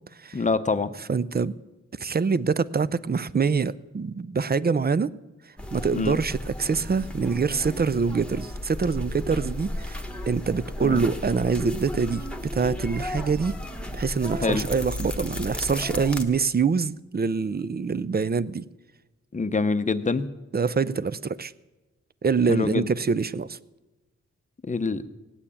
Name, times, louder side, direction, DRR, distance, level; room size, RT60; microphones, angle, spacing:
voice 1, 0.3-0.9 5.9-6.2 10.8-11.0 14.4-14.7 19.3-20.3 22.5-22.9 24.7-25.0, left 4 dB, 25° left, 11 dB, 0.7 m, -25 dB
voice 2, 1.1-1.6 2.0-5.1 5.7-12.3 12.5-13.6 13.9-18.7 20.5-21.5 22.2-23.6, right 5 dB, 35° right, 17 dB, 0.4 m, -25 dB
sound 1, 5.6-16.2, left 1 dB, 5° left, 1.1 m, -34 dB
17.5 x 9.1 x 8.6 m, 1.1 s
wide cardioid pair, 130°, 30 cm